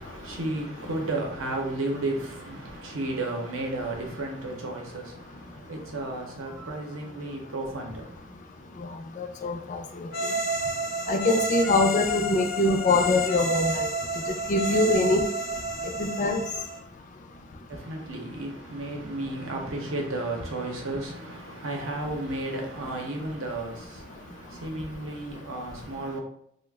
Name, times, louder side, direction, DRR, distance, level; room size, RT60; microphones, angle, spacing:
voice 1, 0.0-8.2 17.7-26.2, right 2 dB, 90° right, 0.7 m, -33 dB
voice 2, 9.2-9.8 11.1-13.9 14.5-15.2 16.0-16.4, left 2 dB, 40° left, 0.3 m, -23 dB
sound 1, 10.1-16.8, right 1 dB, 80° left, 0.7 m, -30 dB
2.4 x 2.1 x 3.3 m
head